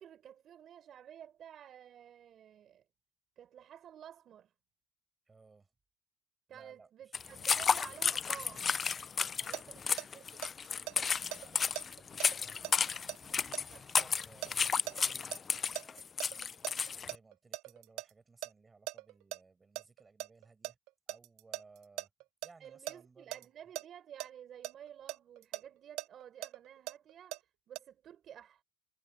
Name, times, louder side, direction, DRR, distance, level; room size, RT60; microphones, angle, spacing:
voice 1, 0.0-2.8 3.4-4.5 6.5-8.7 9.4-10.4 13.7-13.9 22.6-28.6, right 9 dB, 40° right, 4.2 m, -52 dB
voice 2, 5.3-5.7 6.5-7.6 9.4-9.9 11.3-16.1 17.0-20.8 21.1-22.1 22.4-23.5, right 4 dB, 15° right, 6.7 m, -61 dB
sound 1, 7.1-17.1, left 6 dB, 25° left, 0.3 m, -32 dB
sound 2, 9.5-15.4 15.7-18.1 18.4-18.5 18.9-19.4 19.7-22.9 23.3-23.4 23.7-23.8 24.2-24.3 24.6-27.4 27.8-27.9, right 20 dB, 70° right, 0.6 m, -40 dB
cardioid pair, 135°, 0 cm